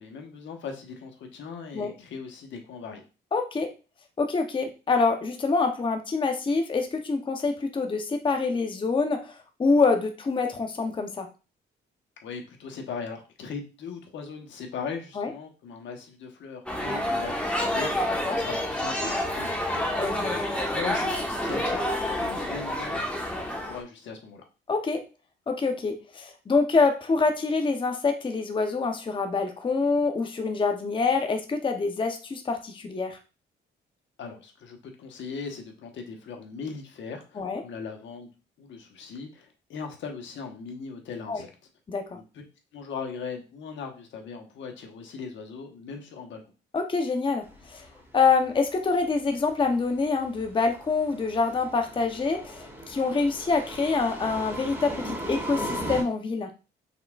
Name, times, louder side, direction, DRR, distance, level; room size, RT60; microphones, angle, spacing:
voice 1, 0.0-3.0 12.2-20.3 20.7-24.5 34.2-38.3 38.6-41.5 42.1-42.4 42.7-46.4, left 5 dB, 70° left, 3 dB, 1.1 m, -39 dB
voice 2, 3.3-3.7 4.2-11.3 15.2-15.3 18.3-18.4 20.0-20.4 24.7-25.1 25.5-33.2 37.4-37.6 41.3-41.4 41.9-42.0 46.7-47.4 47.7-47.8 48.1-56.5, left 4 dB, 25° left, 5 dB, 0.7 m, -26 dB
sound 1, 16.7-23.8, left 1 dB, 5° left, 1.2 m, -28 dB
sound 2, 47.5-56.0, equal, 10° right, 2.1 m, -38 dB
5.6 x 3.6 x 2.3 m, 0.32 s
cardioid pair, 90°, 20 cm